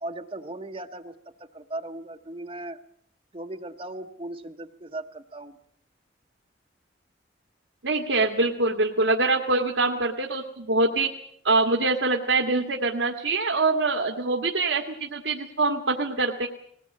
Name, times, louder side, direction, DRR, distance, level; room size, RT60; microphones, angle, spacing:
voice 1, 0.0-1.1 1.4-2.8 3.3-5.5, right 2 dB, 30° right, 6 dB, 0.8 m, -37 dB
voice 2, 7.8-11.1 11.4-16.5, right 3 dB, 85° right, 3 dB, 1.8 m, -24 dB
20.5 x 18.0 x 8.4 m, 0.68 s
head